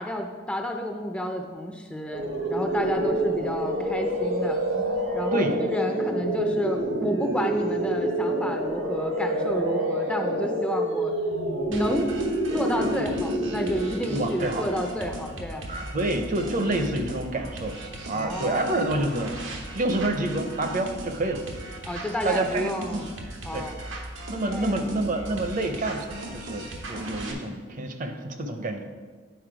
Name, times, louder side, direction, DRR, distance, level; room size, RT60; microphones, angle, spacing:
voice 1, 0.0-2.2 2.5-4.6 5.1-11.1 11.7-12.1 12.5-15.7 18.1-18.7 21.8-23.1 23.4-23.8 24.5-25.0, equal, 5° left, 3 dB, 0.5 m, -30 dB
sound 1, 2.1-14.9, right 1 dB, 70° right, 1.2 m, -27 dB
sound 2, 11.7-27.3, right 1 dB, 90° right, 1.1 m, -38 dB
voice 2, 14.1-14.7 15.7-17.8 18.1-19.5 19.7-21.4 22.2-23.0 23.5-23.7 24.3-28.8, right 1 dB, 45° right, 6 dB, 0.7 m, -28 dB
9.3 x 4.2 x 4.9 m, 1.5 s
head